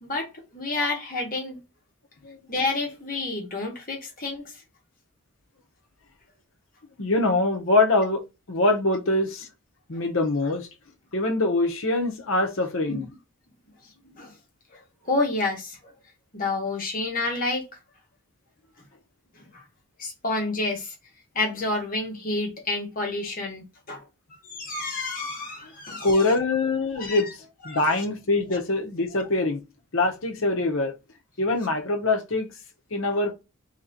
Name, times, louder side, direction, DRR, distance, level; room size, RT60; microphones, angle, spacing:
voice 1, 0.0-1.6 2.5-4.5 12.9-13.1 14.0-14.3 14.7-15.9 16.3-17.7 19.3-19.6 20.0-20.9 21.3-24.0 24.4-26.3 26.9-27.3 27.6-28.0 29.1-29.2, left 2 dB, 40° left, 1.2 m, -29 dB
voice 2, 7.0-8.2 8.5-9.5 9.9-10.7 11.1-13.1 26.0-27.3 27.6-29.6 29.9-30.9 31.4-32.5 32.9-33.3, left 2 dB, 65° left, 0.9 m, -23 dB
3.3 x 2.9 x 3.9 m
head